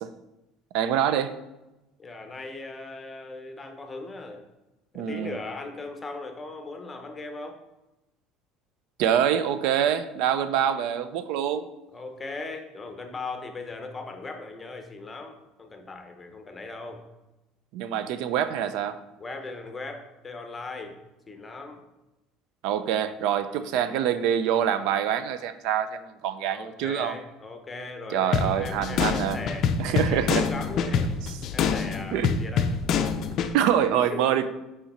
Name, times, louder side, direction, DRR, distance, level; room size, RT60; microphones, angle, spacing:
voice 1, 0.7-1.3 4.9-5.4 9.0-11.7 17.7-19.0 22.6-27.1 28.1-29.4 29.8-30.5 32.1-32.3 33.5-34.5, right 9 dB, 70° right, 12 dB, 0.4 m, -25 dB
voice 2, 2.0-4.5 4.9-7.6 10.6-10.9 11.9-17.0 19.2-20.9 21.3-21.8 23.4-23.8 26.5-31.1 31.5-32.9 33.2-33.5 34.1-34.4, left 3 dB, 15° left, 5 dB, 0.8 m, -39 dB
sound 1, 28.3-33.5, left 6 dB, 45° left, 0.4 m, -26 dB
5.7 x 4.9 x 4.2 m, 0.99 s
cardioid pair, 140°, 0 cm